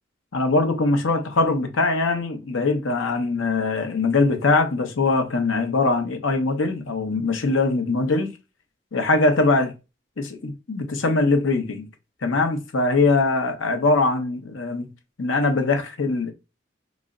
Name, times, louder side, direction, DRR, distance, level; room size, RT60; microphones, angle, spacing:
voice 1, 0.3-8.3 8.9-9.7 10.2-11.9 12.2-14.9 15.2-16.3, left 3 dB, 85° left, 0.7 m, -22 dB
3.1 x 2.1 x 3.6 m
head